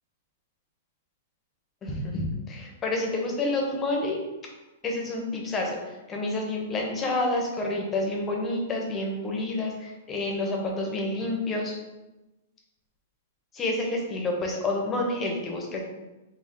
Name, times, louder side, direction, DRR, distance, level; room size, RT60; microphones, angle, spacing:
voice 1, 1.8-4.2 4.8-11.7 13.5-15.8, left 2 dB, 15° left, 0 dB, 0.6 m, -29 dB
3.5 x 2.3 x 3.8 m, 1.1 s
hypercardioid pair, 160°, 0 cm